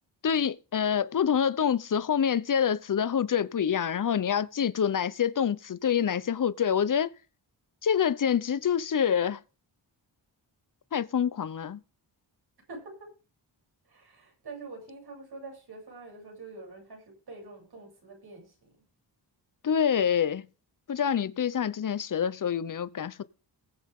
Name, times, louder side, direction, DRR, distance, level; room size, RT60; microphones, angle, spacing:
voice 1, 0.2-7.1 7.8-9.4 10.9-11.8 19.6-20.5 20.9-23.2, left 8 dB, 45° left, 0.9 m, -26 dB
voice 2, 12.7-13.1 13.9-18.7, right 3 dB, 60° right, 8.0 m, -45 dB
21.0 x 7.2 x 3.7 m
cardioid pair, 85°, 43 cm